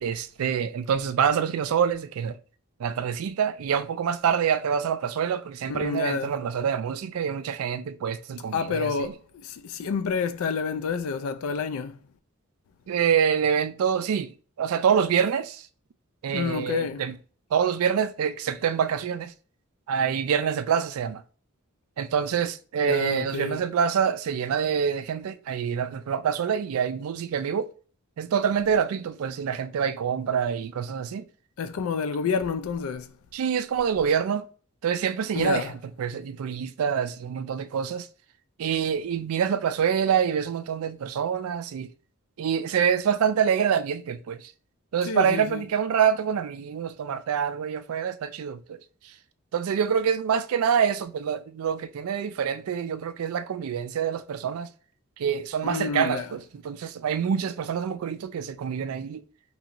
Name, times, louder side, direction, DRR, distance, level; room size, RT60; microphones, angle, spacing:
voice 1, 0.0-2.4 2.8-9.1 12.9-14.3 14.6-15.6 16.2-17.1 17.5-19.3 19.9-21.2 22.0-27.7 28.2-31.2 33.3-34.5 34.8-35.7 36.0-38.1 38.6-41.9 42.4-44.5 44.9-48.8 49.5-54.7 55.2-59.2, right 7 dB, 75° right, 0.3 m, -26 dB
voice 2, 5.6-6.3 8.5-12.0 16.3-17.0 22.8-23.7 31.6-33.2 35.3-35.8 45.0-45.6 55.6-56.3, left 5 dB, 70° left, 0.4 m, -29 dB
3.1 x 2.9 x 2.5 m
head